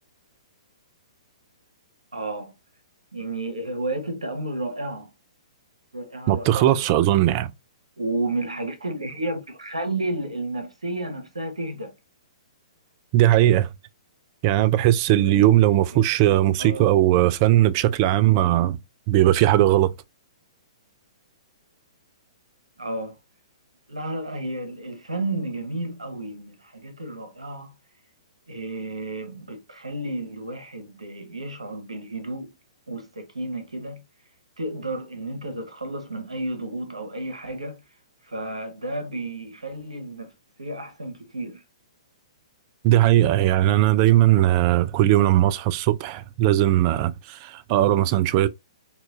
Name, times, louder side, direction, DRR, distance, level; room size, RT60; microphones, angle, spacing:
voice 1, 2.1-2.5 3.1-5.1 5.9-6.9 8.0-11.9 15.2-15.6 15.9-16.0 16.6-16.9 22.8-23.2 23.9-27.7 28.5-32.5 32.9-34.0 34.6-37.8 38.2-40.3 40.6-41.6, right 2 dB, 85° right, 1.0 m, -32 dB
voice 2, 6.3-7.5 13.1-13.7 14.4-18.8 19.1-19.9 42.8-48.5, right 13 dB, 35° right, 0.3 m, -19 dB
4.2 x 2.3 x 2.5 m
figure-of-eight pair, 120°, 3 cm